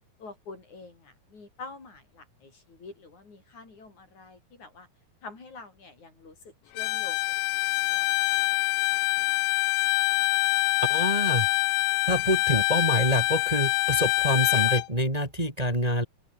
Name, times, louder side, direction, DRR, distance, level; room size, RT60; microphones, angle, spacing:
voice 1, 0.2-4.9 5.2-7.3 7.6-8.6 8.9-10.0, left 3 dB, 45° left, 6.8 m, -47 dB
Bowed string instrument, 6.8-14.9, left 23 dB, 85° left, 2.0 m, -25 dB
voice 2, 10.8-11.5 12.1-16.0, equal, 10° right, 4.6 m, -26 dB
open air
omnidirectional pair, 4.6 m